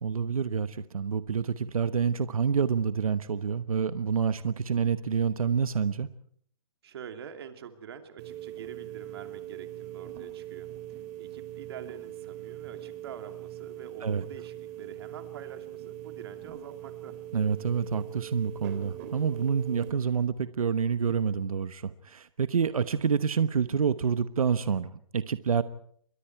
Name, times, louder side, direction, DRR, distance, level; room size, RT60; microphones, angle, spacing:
voice 1, 0.0-6.1 14.0-14.2 17.3-25.6, right 6 dB, 80° right, 12 dB, 1.2 m, -28 dB
voice 2, 6.8-17.2, right 8 dB, 45° right, 6 dB, 2.7 m, -46 dB
sound 1, 8.2-19.9, right 12 dB, 25° right, 3.5 m, -42 dB
29.0 x 22.5 x 4.6 m, 0.62 s
hypercardioid pair, 160°, 18 cm